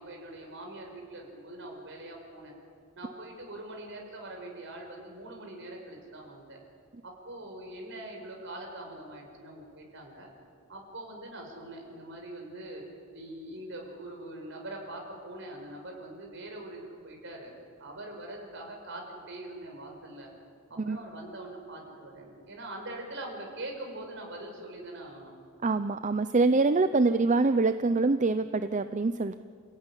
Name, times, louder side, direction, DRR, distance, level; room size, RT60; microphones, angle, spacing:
voice 1, 0.0-2.5 2.9-6.6 7.0-10.3 10.7-12.8 13.1-17.5 17.8-20.3 20.7-25.3, right 1 dB, 55° right, 1 dB, 6.0 m, -43 dB
voice 2, 25.6-29.3, right 3 dB, 35° right, 11 dB, 0.6 m, -25 dB
29.5 x 16.0 x 9.9 m, 2.4 s
head